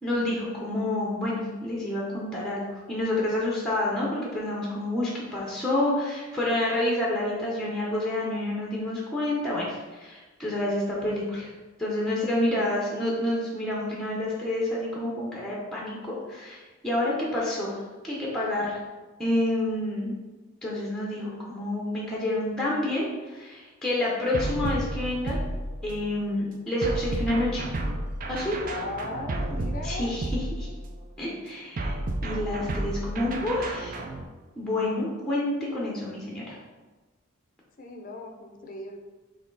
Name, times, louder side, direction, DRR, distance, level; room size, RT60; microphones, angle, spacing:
voice 1, 0.0-2.6 2.9-11.5 11.8-18.8 19.2-20.1 20.6-25.4 25.8-27.6 28.3-28.6 29.8-30.7 31.2-32.0 32.2-34.0 34.6-36.6, left 1 dB, ahead, -4 dB, 0.7 m, -28 dB
sound 1, 24.3-26.1 26.8-31.0 31.8-34.2, right 1 dB, 40° right, 0.4 m, -32 dB
voice 2, 28.6-30.2 37.8-39.0, left 2 dB, 40° left, 4 dB, 0.5 m, -37 dB
4.3 x 3.2 x 3.8 m, 1.3 s
head